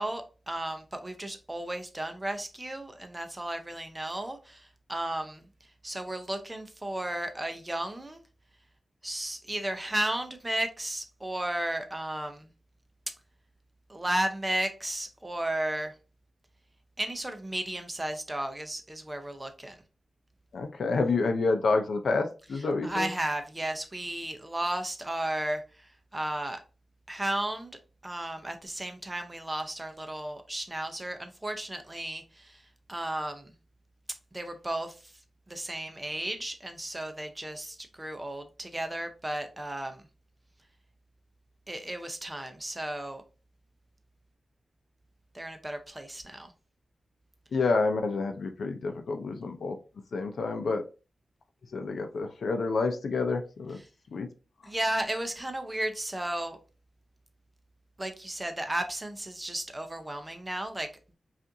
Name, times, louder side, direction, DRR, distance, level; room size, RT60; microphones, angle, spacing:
voice 1, 0.0-5.4 5.8-8.2 9.0-12.5 13.9-16.0 17.0-19.8 22.6-26.6 27.1-27.7 28.0-32.6 32.9-33.5 34.3-35.1 35.5-40.1 41.7-43.2 45.3-46.5 54.6-56.6 58.0-60.9, right 1 dB, 15° right, 0.6 m, -34 dB
voice 2, 20.5-23.1 47.5-49.8 50.1-50.8 51.7-53.8 54.1-54.3, left 3 dB, 75° left, 0.5 m, -28 dB
5.3 x 2.5 x 2.6 m
wide cardioid pair, 140°, 0 cm